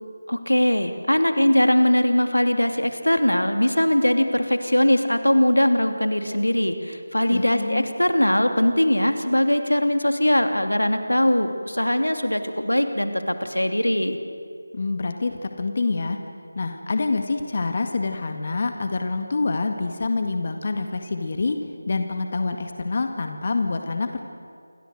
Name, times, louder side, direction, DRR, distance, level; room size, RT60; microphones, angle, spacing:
voice 1, 0.3-14.2, left 1 dB, 90° left, 7 dB, 2.8 m, -21 dB
voice 2, 7.3-7.9 14.7-16.2 16.6-21.6 21.9-24.2, left 3 dB, 40° left, 6 dB, 2.0 m, -26 dB
28.5 x 23.5 x 7.9 m, 2.3 s
figure-of-eight pair, 165°, 0 cm